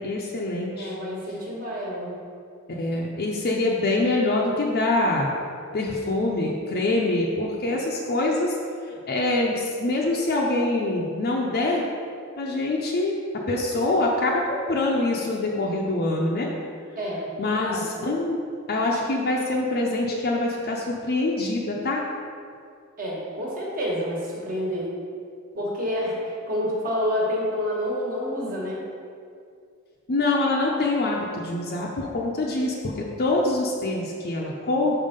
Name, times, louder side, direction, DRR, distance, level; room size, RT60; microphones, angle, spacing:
voice 1, 0.0-0.9 2.8-5.3 5.7-8.5 9.1-11.9 12.4-13.2 13.5-16.5 17.4-18.4 18.7-22.0 30.1-35.0, left 2 dB, 45° left, -2 dB, 0.6 m, -25 dB
voice 2, 0.7-2.2 17.0-17.8 23.0-24.9 25.5-28.9, equal, 40° right, -4 dB, 1.4 m, -28 dB
5.5 x 4.5 x 5.2 m, 2.3 s
head